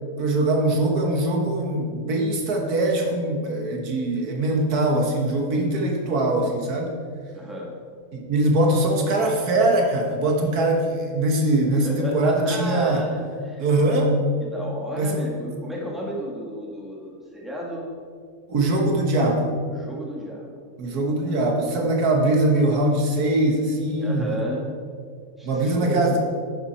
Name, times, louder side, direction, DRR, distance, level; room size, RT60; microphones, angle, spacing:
voice 1, 0.2-6.9 8.1-13.0 13.6-14.1 15.0-15.3 18.5-19.5 20.8-24.2 25.4-26.2, right 1 dB, 90° right, 1 dB, 1.8 m, -22 dB
voice 2, 7.3-7.7 11.7-13.7 14.4-17.9 19.7-20.6 21.2-21.4 24.0-24.7 25.4-26.2, equal, ahead, -3 dB, 1.7 m, -33 dB
10.5 x 7.1 x 4.3 m, 2.1 s
omnidirectional pair, 1.6 m